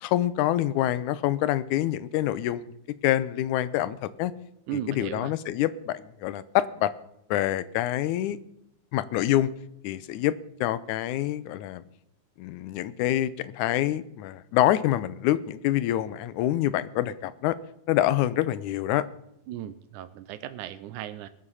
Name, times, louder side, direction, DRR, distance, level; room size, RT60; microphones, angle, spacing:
voice 1, 0.0-2.7 3.0-4.3 4.7-6.9 7.3-8.4 8.9-9.5 9.8-11.8 12.4-17.6 17.9-19.0, left 13 dB, 80° left, 16 dB, 2.1 m, -26 dB
voice 2, 4.7-5.3 19.5-21.3, right 11 dB, 90° right, 12 dB, 2.2 m, -36 dB
22.0 x 7.5 x 5.6 m, 0.78 s
omnidirectional pair, 3.5 m